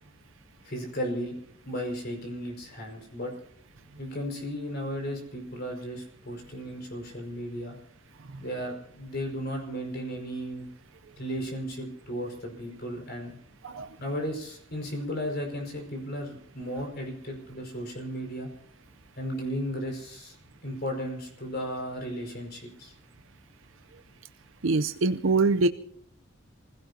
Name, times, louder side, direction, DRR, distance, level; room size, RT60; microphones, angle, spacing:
voice 1, 0.6-1.4 1.7-3.3 4.0-7.8 8.4-10.7 11.2-13.4 14.0-18.5 19.2-20.4 20.6-22.9, equal, 55° left, 2 dB, 5.1 m, -35 dB
voice 2, 24.6-25.7, right 3 dB, 80° right, 9 dB, 0.6 m, -23 dB
27.5 x 16.5 x 2.8 m, 0.66 s
head